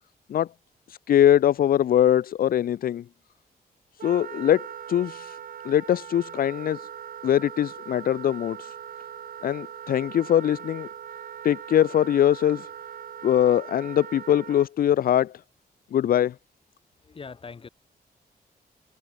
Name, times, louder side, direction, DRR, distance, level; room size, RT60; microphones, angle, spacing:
voice 1, 0.9-3.0 4.0-5.4 5.6-6.9 7.2-8.7 9.4-10.9 11.4-12.7 13.2-15.3 15.9-16.3, left 10 dB, 65° left, 0.7 m, -22 dB
Wind instrument woodwind instrument, 4.0-14.7, right 9 dB, 65° right, 2.3 m, -40 dB
voice 2, 17.0-17.7, left 5 dB, 35° left, 4.5 m, -41 dB
wide cardioid pair, 145°, 16 cm